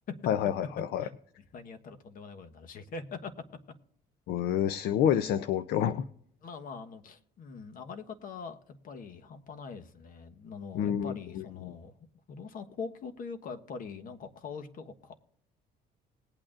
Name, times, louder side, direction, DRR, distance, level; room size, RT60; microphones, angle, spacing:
voice 1, 0.3-1.0 4.3-6.0 10.7-11.7, left 9 dB, 70° left, 13 dB, 0.5 m, -28 dB
voice 2, 1.5-3.3 6.4-11.9 12.3-15.1, left 5 dB, 55° left, 8 dB, 1.2 m, -43 dB
20.0 x 8.8 x 2.5 m, 0.69 s
cardioid pair, 110°, 17 cm